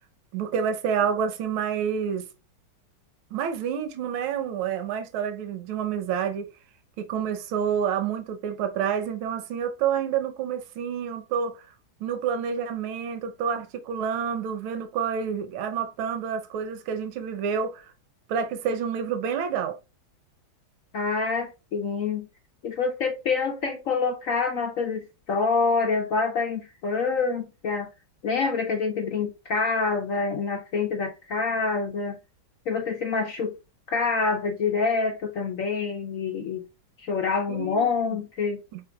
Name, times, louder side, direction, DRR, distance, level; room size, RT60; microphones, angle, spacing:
voice 1, 0.3-2.3 3.3-6.5 7.0-11.7 12.0-17.9 18.3-19.8 37.5-38.2 38.7-38.8, right 7 dB, 80° right, 1.6 m, -28 dB
voice 2, 20.9-22.3 22.6-27.9 28.2-32.2 32.7-33.6 33.9-36.7 37.0-38.6, left 4 dB, 70° left, 0.7 m, -26 dB
6.0 x 3.8 x 2.2 m
omnidirectional pair, 2.2 m